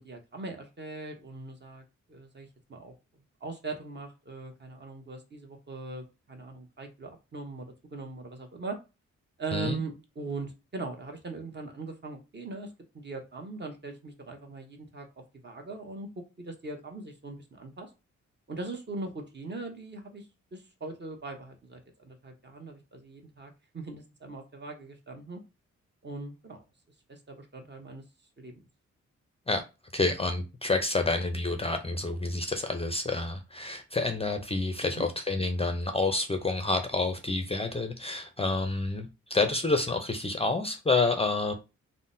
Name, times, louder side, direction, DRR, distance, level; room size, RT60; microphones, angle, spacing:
voice 1, 0.0-2.9 3.4-8.8 9.4-17.9 18.5-20.3 20.5-25.4 26.0-26.6 27.1-28.0 28.4-28.6 34.8-35.1, right 3 dB, 35° right, 0.8 m, -40 dB
voice 2, 29.9-41.5, left 3 dB, 20° left, 0.4 m, -28 dB
3.6 x 2.1 x 2.6 m
cardioid pair, 75°, 29 cm